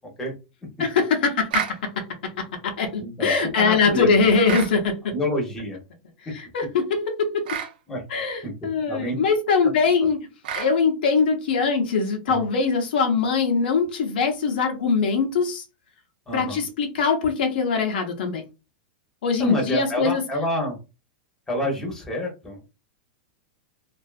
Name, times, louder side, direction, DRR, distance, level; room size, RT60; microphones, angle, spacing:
voice 1, 0.8-2.0 2.4-5.1 6.5-7.5 8.1-10.2 10.5-15.6 16.3-18.4 19.2-20.2, left 5 dB, 75° left, 0.7 m, -22 dB
sound 1, 1.5-1.8 4.4-4.8 7.5-7.7 10.4-10.7, right 8 dB, 75° right, 0.5 m, -29 dB
voice 2, 3.0-4.2 5.1-5.8 6.3-6.4 7.9-8.0 8.4-8.5 8.9-9.2 12.3-12.4 16.3-16.6 19.4-20.8 21.5-22.7, equal, 10° left, 0.9 m, -28 dB
2.5 x 2.3 x 2.4 m
supercardioid pair, 155°, 5 cm